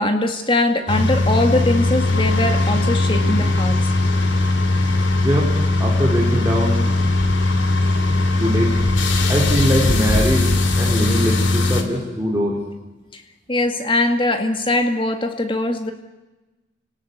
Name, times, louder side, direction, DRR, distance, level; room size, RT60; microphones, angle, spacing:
voice 1, 0.0-3.9 13.1-13.2 13.5-15.9, left 2 dB, 25° left, 6 dB, 2.0 m, -21 dB
sound 1, 0.9-11.8, left 2 dB, 85° left, 2.9 m, -19 dB
voice 2, 5.2-6.9 8.4-8.8 9.3-12.6, equal, 15° right, -3 dB, 4.1 m, -22 dB
29.5 x 19.0 x 8.2 m, 1.1 s
head